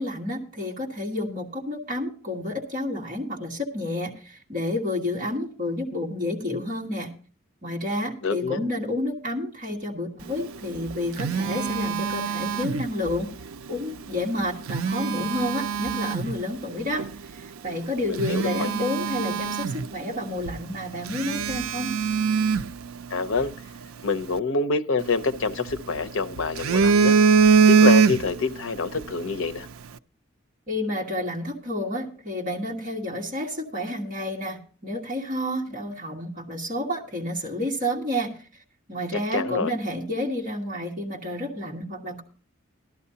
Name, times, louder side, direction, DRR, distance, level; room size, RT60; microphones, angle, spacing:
voice 1, 0.0-7.1 7.6-13.3 13.7-17.0 17.3-21.9 30.7-38.4 38.9-42.2, left 1 dB, 40° right, 1.5 m, -30 dB
voice 2, 8.2-8.7 18.1-18.7 23.1-23.5 24.0-27.1 27.7-29.7 39.3-39.7, left 3 dB, 70° left, 0.6 m, -26 dB
Telephone, 10.6-13.2 14.5-16.4 17.0-17.1 17.7-17.8 18.1-20.2 20.5-20.6 21.1-23.5 25.0-26.0 26.4-28.5 28.8-29.0, right 6 dB, 80° right, 0.4 m, -22 dB
15.5 x 12.0 x 2.8 m
head